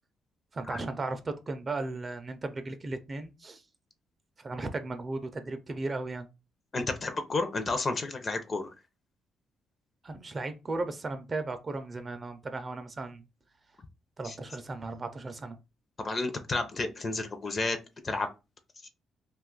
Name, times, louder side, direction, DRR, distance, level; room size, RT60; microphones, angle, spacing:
voice 1, 0.5-3.6 4.4-6.3 10.0-13.2 14.2-15.6, right 2 dB, 35° right, 0.5 m, -36 dB
voice 2, 6.7-8.7 14.2-14.3 16.0-17.8 18.0-18.3, left 3 dB, 35° left, 0.6 m, -31 dB
2.5 x 2.3 x 3.8 m
cardioid pair, 90°, 0 cm